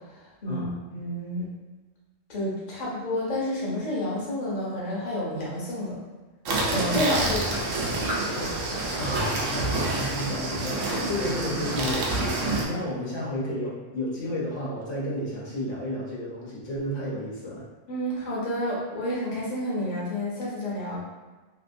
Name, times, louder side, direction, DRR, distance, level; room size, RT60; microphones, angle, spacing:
voice 1, 0.1-0.6 0.9-1.5 2.3-6.0 6.6-7.9 8.3-8.5 17.9-21.0, left 1 dB, 40° left, -6 dB, 0.8 m, -30 dB
sound 1, 6.4-12.6, right 2 dB, 85° right, 1.0 m, -28 dB
voice 2, 7.2-7.6 9.0-17.7, left 1 dB, 75° left, -6 dB, 1.1 m, -32 dB
2.9 x 2.5 x 2.6 m, 1.3 s
omnidirectional pair, 1.3 m